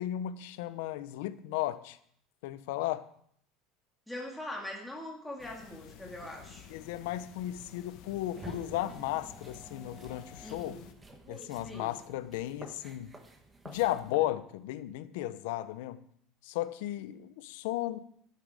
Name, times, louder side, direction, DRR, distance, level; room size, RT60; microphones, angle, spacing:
voice 1, 0.0-2.0 2.4-3.1 6.7-10.8 11.3-13.1 13.6-16.0 16.4-18.0, left 14 dB, 85° left, 0.7 m, -35 dB
voice 2, 4.1-6.7 10.4-10.9 11.6-12.0, left 1 dB, 5° left, 2.2 m, -42 dB
sound 1, 5.4-10.9, left 9 dB, 55° left, 1.1 m, -52 dB
sound 2, 8.3-14.3, right 2 dB, 15° right, 1.1 m, -50 dB
12.5 x 7.7 x 5.0 m
cardioid pair, 160°, 0 cm